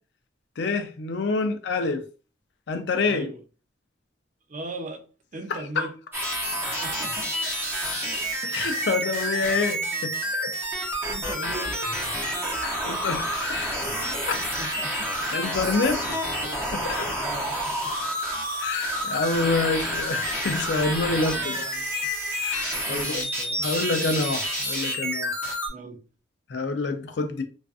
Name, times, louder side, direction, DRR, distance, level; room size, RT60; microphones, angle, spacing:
voice 1, 0.6-2.0 2.7-3.3 5.5-5.9 8.4-10.5 12.5-13.8 14.3-14.4 15.3-16.3 16.7-17.1 18.6-21.6 22.4-23.2 23.6-25.3 26.5-27.4, left 3 dB, 70° left, 0.4 m, -27 dB
voice 2, 3.1-3.4 4.5-5.0 5.3-5.9 6.8-7.3 11.1-11.8 14.6-15.2 17.2-17.5 21.3-21.9 22.9-23.6 25.7-26.0, right 2 dB, 45° right, 0.5 m, -38 dB
sound 1, 6.1-25.7, equal, 15° right, 0.7 m, -29 dB
2.4 x 2.3 x 2.4 m
head